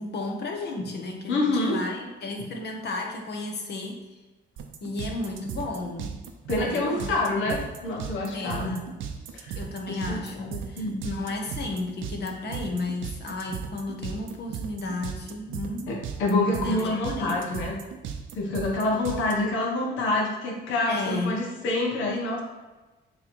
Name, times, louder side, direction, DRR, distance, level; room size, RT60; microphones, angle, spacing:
voice 1, 0.0-4.2 4.8-6.2 6.7-7.1 7.5-7.6 8.3-9.0 9.5-15.9 16.6-17.4 20.9-21.3, left 2 dB, 55° left, 2 dB, 1.3 m, -33 dB
voice 2, 1.3-1.8 6.5-8.8 9.3-9.6 9.9-10.9 15.9-17.8 18.4-22.4, left 2 dB, 75° left, -1 dB, 1.4 m, -27 dB
sound 1, 4.6-19.3, right 7 dB, 85° right, 0.7 m, -36 dB
7.0 x 3.2 x 4.6 m, 1.2 s
cardioid pair, 90°, 20 cm